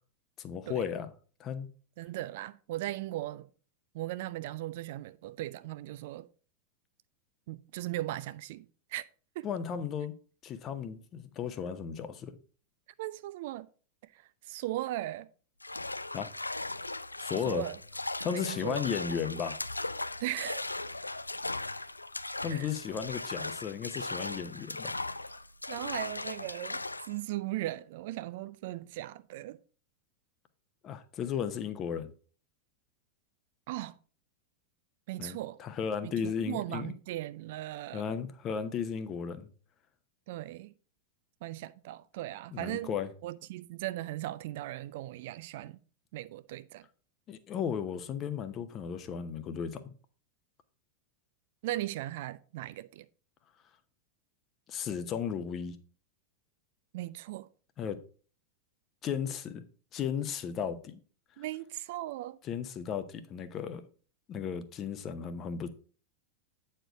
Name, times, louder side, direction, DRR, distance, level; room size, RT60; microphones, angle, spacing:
voice 1, 0.4-1.1 1.4-1.7 9.4-10.1 10.4-12.4 16.1-16.3 17.2-17.7 18.2-19.6 22.4-24.9 30.8-32.1 35.2-36.9 37.9-39.5 42.5-43.1 47.3-49.9 54.7-55.8 57.8-58.0 59.0-59.6 59.9-61.0 62.4-63.8 64.3-65.7, left 7 dB, 30° left, 0.8 m, -35 dB
voice 2, 2.0-3.5 3.9-6.3 7.5-9.0 9.4-9.5 13.0-13.7 14.1-15.3 17.5-17.8 18.3-18.9 20.2-20.6 22.4-22.7 25.7-26.8 27.1-29.6 33.7-34.0 35.1-35.6 36.0-38.2 40.3-40.7 41.4-42.9 43.2-45.8 46.1-46.9 51.6-53.1 56.9-57.5 61.4-62.4, right 16 dB, 50° right, 0.4 m, -38 dB
sound 1, 15.6-27.2, left 2 dB, 85° left, 0.3 m, -38 dB
9.0 x 4.5 x 4.7 m
figure-of-eight pair, 90°, 0 cm